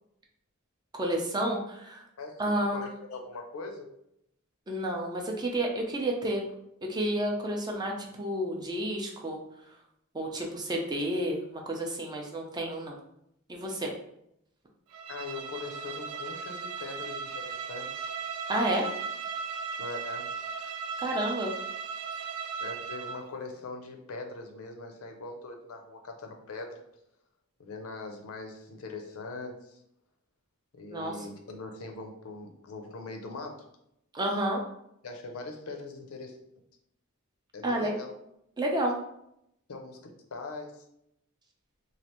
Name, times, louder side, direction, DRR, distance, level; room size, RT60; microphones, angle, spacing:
voice 1, 0.9-2.0 2.4-2.8 4.7-6.4 6.8-9.4 10.1-13.0 13.5-13.9 18.5-18.9 21.0-21.5 30.9-31.1 34.1-34.6 37.6-38.0 38.6-39.0, right 1 dB, 20° right, 0 dB, 0.5 m, -30 dB
voice 2, 2.2-3.9 15.1-18.4 19.8-20.3 22.6-26.8 27.6-29.8 30.7-33.7 34.3-34.4 35.0-36.4 37.5-38.1 39.7-40.8, left 3 dB, 75° left, 4 dB, 0.5 m, -41 dB
Bowed string instrument, 14.9-23.3, right 5 dB, 85° right, 0.3 m, -37 dB
3.1 x 2.4 x 2.9 m, 0.77 s
head